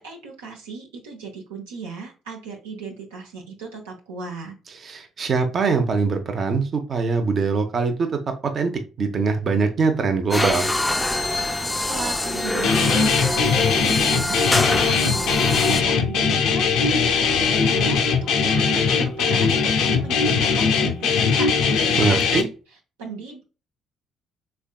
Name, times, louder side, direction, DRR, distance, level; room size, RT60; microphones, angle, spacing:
voice 1, 0.0-4.5 11.9-14.4 14.8-22.5 23.0-23.4, right 4 dB, 85° right, 0 dB, 0.7 m, -36 dB
voice 2, 4.8-8.1 8.4-8.7 9.0-10.7 22.0-22.5, right 4 dB, 45° right, 6 dB, 0.6 m, -22 dB
sound 1, 10.3-15.8, left 2 dB, 15° left, 0.4 m, -24 dB
Guitar, 12.6-22.4, left 5 dB, 70° left, 0.4 m, -20 dB
sound 2, 15.1-21.2, equal, 65° right, 1.2 m, -37 dB
3.5 x 3.4 x 2.2 m, 0.33 s
hypercardioid pair, 50°, 0 cm